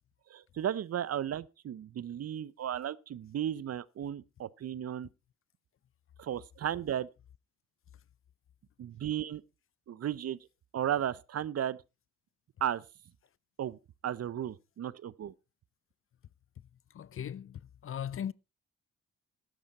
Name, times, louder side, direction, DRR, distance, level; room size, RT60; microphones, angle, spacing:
voice 1, 0.3-5.1 6.2-7.1 8.8-9.4 9.9-10.4 10.7-11.8 12.6-12.8 13.6-13.8 14.0-15.3, right 10 dB, 55° right, 0.7 m, -34 dB
voice 2, 16.9-18.3, left 9 dB, 45° left, 0.5 m, -38 dB
12.5 x 10.0 x 4.1 m
supercardioid pair, 65°, 30 cm